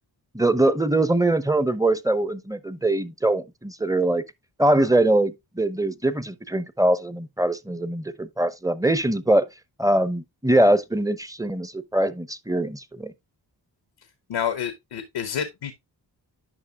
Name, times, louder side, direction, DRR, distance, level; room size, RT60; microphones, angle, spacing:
voice 1, 0.3-4.2 4.6-9.5 9.8-13.1, right 1 dB, 10° right, 0.8 m, -22 dB
voice 2, 14.3-15.7, left 8 dB, 85° left, 1.0 m, -28 dB
10.0 x 5.5 x 2.4 m
cardioid pair, 40°, 43 cm